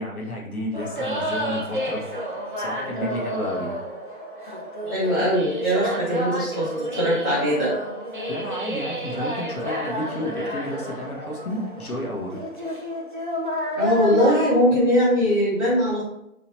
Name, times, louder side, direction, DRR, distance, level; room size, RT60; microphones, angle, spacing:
voice 1, 0.0-3.7 8.3-12.4, equal, 85° left, -1 dB, 1.4 m, -31 dB
sound 1, 0.7-14.5, equal, 35° right, 0.5 m, -30 dB
voice 2, 4.9-7.7 13.7-16.0, equal, 5° left, -19 dB, 1.5 m, -21 dB
4.1 x 3.1 x 2.7 m, 0.81 s
hypercardioid pair, 170°, 43 cm